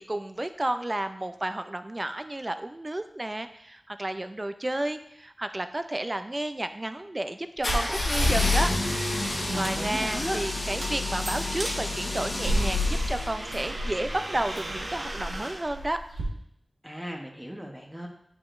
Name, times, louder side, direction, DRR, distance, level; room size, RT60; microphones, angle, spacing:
voice 1, 0.0-8.7 9.5-16.0, right 1 dB, 30° right, 9 dB, 0.4 m, -32 dB
sound 1, 7.6-13.6, left 2 dB, 85° left, 1.8 m, -28 dB
sound 2, 7.6-16.2, right 1 dB, 90° right, 1.4 m, -35 dB
voice 2, 9.5-10.4 16.8-18.1, equal, 5° right, 1 dB, 0.8 m, -36 dB
9.4 x 4.9 x 2.5 m, 0.74 s
wide cardioid pair, 70°, 0 cm